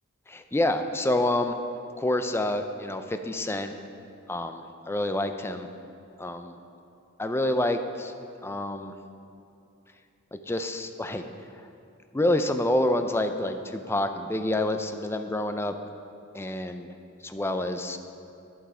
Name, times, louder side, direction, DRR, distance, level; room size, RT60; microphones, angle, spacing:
voice 1, 0.3-1.6 2.0-3.7 4.3-5.7 6.2-6.6 7.2-8.1 8.4-8.9 10.3-11.2 12.1-15.7 16.3-16.9 17.2-18.0, left 1 dB, 10° left, 7 dB, 0.4 m, -27 dB
10.5 x 8.3 x 4.4 m, 2.6 s
head